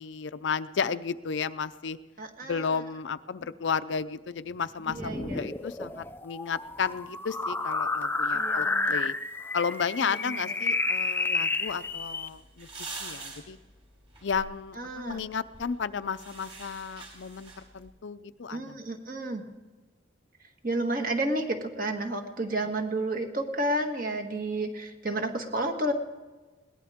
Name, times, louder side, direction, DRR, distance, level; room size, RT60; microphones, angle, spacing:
voice 1, 0.0-2.0 2.4-9.1 9.5-13.6 14.2-18.8, left 6 dB, 75° left, 13 dB, 0.5 m, -33 dB
voice 2, 2.2-2.8 4.9-5.5 8.3-9.0 10.0-10.5 14.8-15.3 18.5-19.4 20.6-25.9, right 1 dB, 45° right, 4 dB, 1.7 m, -31 dB
sound 1, 4.9-12.3, left 3 dB, 10° left, 0.4 m, -30 dB
sound 2, 11.7-17.9, right 3 dB, 30° right, 4.0 m, -46 dB
21.5 x 18.0 x 3.6 m, 1.2 s
head